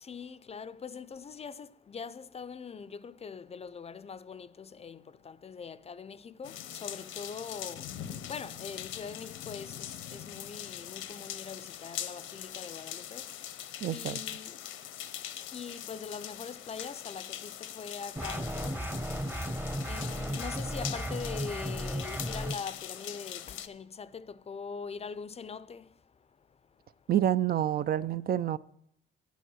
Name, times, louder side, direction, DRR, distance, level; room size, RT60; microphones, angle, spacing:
voice 1, 0.0-7.8 8.3-13.2 13.9-14.6 15.5-18.8 19.9-25.8, left 6 dB, 30° left, 0.5 m, -42 dB
sound 1, 6.4-23.7, left 11 dB, 85° left, 0.8 m, -42 dB
voice 2, 13.8-14.2 27.1-28.6, right 11 dB, 50° right, 0.4 m, -28 dB
sound 2, 18.2-22.5, equal, 10° right, 0.8 m, -35 dB
9.3 x 9.2 x 6.2 m
cardioid pair, 90°, 20 cm